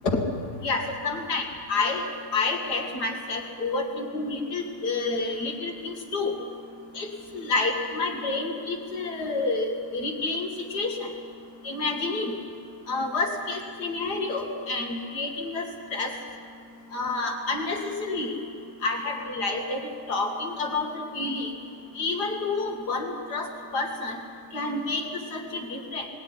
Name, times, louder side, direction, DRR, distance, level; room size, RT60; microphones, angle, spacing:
voice 1, 0.6-1.4 1.7-2.0 2.3-6.3 6.9-7.1 7.3-11.1 11.6-12.3 12.9-16.1 16.9-18.4 18.8-21.5 21.9-24.2 24.5-25.0 25.3-26.1, left 3 dB, 90° left, 2 dB, 2.8 m, -29 dB
20.5 x 16.5 x 9.8 m, 2.3 s
omnidirectional pair, 1.7 m